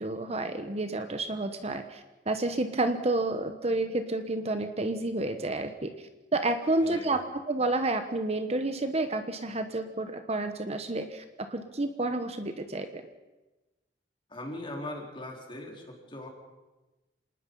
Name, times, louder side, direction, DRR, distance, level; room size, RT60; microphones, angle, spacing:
voice 1, 0.0-13.0, right 2 dB, 35° right, 8 dB, 1.2 m, -30 dB
voice 2, 6.8-7.2 14.3-16.3, left 1 dB, 30° left, 1 dB, 4.0 m, -40 dB
27.0 x 19.0 x 5.5 m, 1.1 s
head